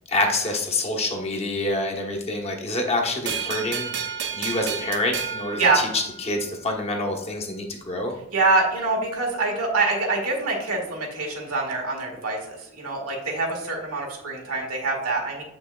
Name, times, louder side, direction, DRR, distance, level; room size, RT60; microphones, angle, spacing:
voice 1, 0.1-3.9 4.3-8.1, left 2 dB, 30° left, 0 dB, 1.0 m, -26 dB
sound 1, 3.3-6.5, right 7 dB, 55° right, 0.6 m, -31 dB
voice 2, 8.3-15.4, right 3 dB, 90° right, 0 dB, 1.8 m, -25 dB
7.6 x 5.9 x 2.3 m, 0.89 s
head